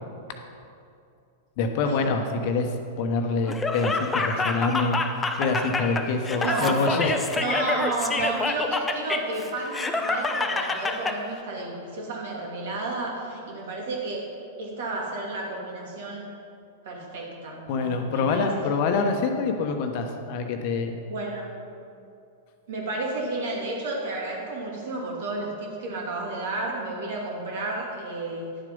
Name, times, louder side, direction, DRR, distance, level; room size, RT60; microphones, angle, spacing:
voice 1, 1.6-2.7 3.0-5.0 5.4-7.1 17.7-21.0, left 4 dB, 50° left, 5 dB, 1.1 m, -25 dB
Laughter, 3.5-11.2, left 3 dB, 15° left, 0.8 m, -27 dB
voice 2, 6.4-7.0 7.3-14.2 14.6-16.3 16.8-19.2 21.1-21.5 22.7-28.6, right 2 dB, 60° right, -2 dB, 2.6 m, -32 dB
11.0 x 7.6 x 5.4 m, 2.5 s
figure-of-eight pair, 100°, 0 cm